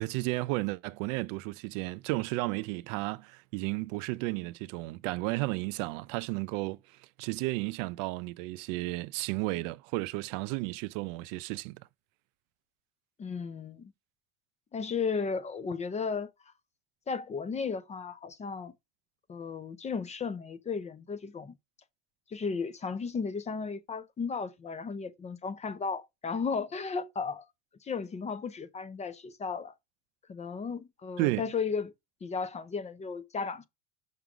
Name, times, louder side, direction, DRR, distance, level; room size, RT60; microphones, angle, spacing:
voice 1, 0.0-6.8 7.2-11.8 31.2-31.5, right 22 dB, 75° right, 0.6 m, -33 dB
voice 2, 13.2-13.9 14.7-16.3 17.1-18.7 19.3-21.6 22.3-27.5 27.8-29.7 30.3-31.9 32.2-33.6, left 5 dB, 20° left, 0.5 m, -34 dB
6.0 x 3.8 x 5.9 m
cardioid pair, 155°, 39 cm